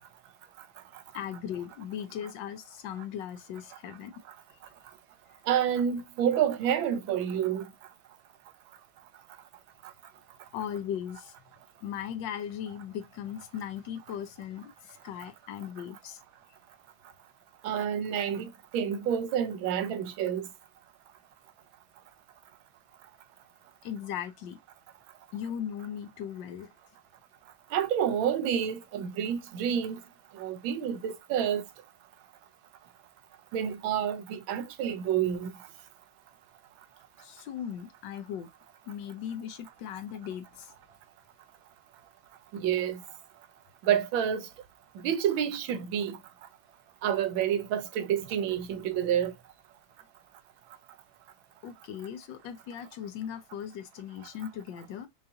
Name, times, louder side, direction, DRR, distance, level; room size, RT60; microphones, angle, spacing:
voice 1, 1.1-4.1 10.5-11.3 11.8-16.2 23.8-24.6 25.3-26.7 37.2-38.5 38.9-40.7 51.6-55.1, left 9 dB, 75° left, 1.2 m, -38 dB
voice 2, 5.5-7.6 17.6-20.5 27.7-30.0 30.4-31.6 33.5-35.5 42.5-43.0 43.9-44.5 45.0-46.2 47.0-49.3, right 9 dB, 90° right, 1.5 m, -28 dB
5.5 x 2.4 x 2.7 m
omnidirectional pair, 2.1 m